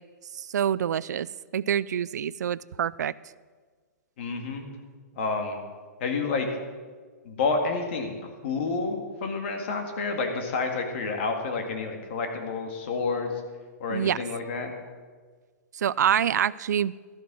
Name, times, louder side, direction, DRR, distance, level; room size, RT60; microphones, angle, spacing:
voice 1, 0.4-1.3 1.5-3.1 13.9-14.2 15.7-16.9, right 9 dB, 90° right, 20 dB, 0.4 m, -26 dB
voice 2, 4.2-4.6 5.1-5.6 6.0-6.5 7.2-8.1 8.4-13.3 13.8-14.7, left 4 dB, 45° left, 4 dB, 2.0 m, -29 dB
13.0 x 9.4 x 6.1 m, 1.5 s
hypercardioid pair, 165°, 9 cm